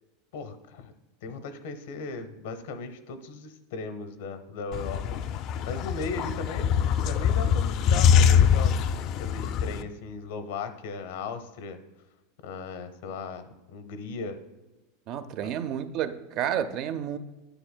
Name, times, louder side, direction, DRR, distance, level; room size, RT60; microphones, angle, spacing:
voice 1, 0.3-0.9 1.2-11.8 12.4-14.4 15.4-15.5, left 4 dB, 70° left, 0.7 m, -37 dB
sound 1, 4.7-9.8, left 7 dB, 40° left, 0.3 m, -23 dB
voice 2, 15.1-17.2, right 9 dB, 40° right, 0.4 m, -30 dB
9.9 x 6.8 x 2.2 m
supercardioid pair, 150°, 0 cm